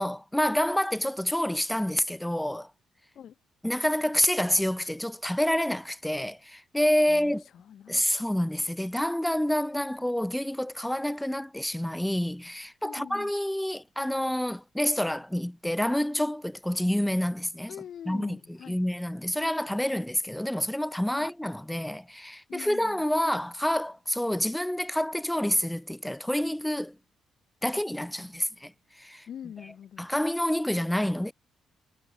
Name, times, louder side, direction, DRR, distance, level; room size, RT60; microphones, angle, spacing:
voice 1, 0.0-2.7 3.6-7.4 7.9-17.7 18.1-27.0 27.6-28.7 29.0-29.3 30.0-31.3, left 1 dB, 5° left, 2.0 m, -28 dB
voice 2, 7.1-8.2 12.8-13.3 17.7-18.8 21.1-21.3 22.5-23.0 27.7-27.8 29.3-30.1, left 9 dB, 65° left, 4.5 m, -44 dB
cardioid pair, 90°, 0 cm